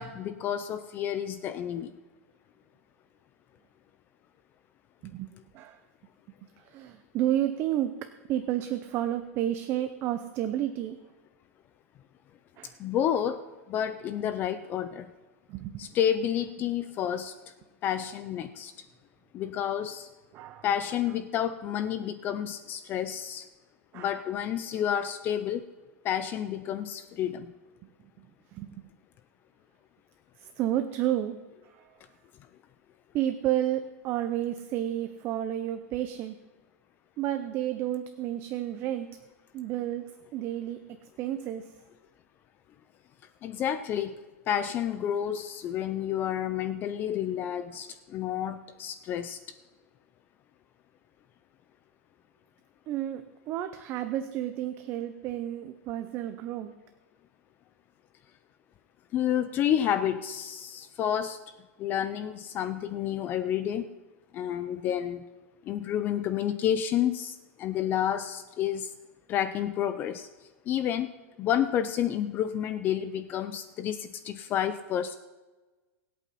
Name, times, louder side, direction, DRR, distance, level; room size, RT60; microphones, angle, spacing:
voice 1, 0.0-1.9 12.8-13.4 13.7-15.1 15.8-17.3 17.8-18.7 19.3-20.1 20.6-23.5 23.9-25.6 26.0-27.5 43.4-44.2 44.5-49.4 59.1-61.4 61.8-63.9 64.3-65.2 65.7-68.9 69.3-70.3 70.7-71.1 71.4-75.2, left 10 dB, 25° left, 11 dB, 0.5 m, -30 dB
voice 2, 5.0-5.8 6.4-11.0 12.6-12.8 15.5-16.1 16.6-16.7 20.3-21.2 23.9-24.2 24.8-25.0 27.8-27.9 28.2-28.3 28.5-28.9 30.4-31.4 31.6-31.9 33.1-36.4 37.2-39.1 39.5-40.0 40.3-41.7 52.9-56.7, right 12 dB, 30° right, 9 dB, 0.6 m, -31 dB
24.5 x 8.4 x 4.2 m, 1.2 s
supercardioid pair, 165°, 8 cm